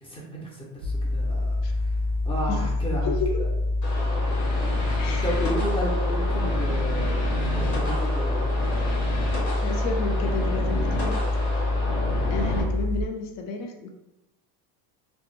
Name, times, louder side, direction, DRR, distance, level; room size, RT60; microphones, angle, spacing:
voice 1, 0.0-1.9 2.3-3.5 5.2-8.5, equal, 15° left, -4 dB, 0.4 m, -33 dB
sound 1, 0.8-13.0, left 2 dB, 40° right, 0.5 m, -26 dB
voice 2, 3.0-3.4 5.0-5.4 9.6-11.5 12.3-13.9, left 3 dB, 70° left, 3 dB, 0.6 m, -32 dB
sound 2, 3.8-12.6, left 1 dB, 90° left, 1.1 m, -31 dB
2.1 x 2.1 x 3.0 m, 0.91 s
cardioid pair, 125°, 46 cm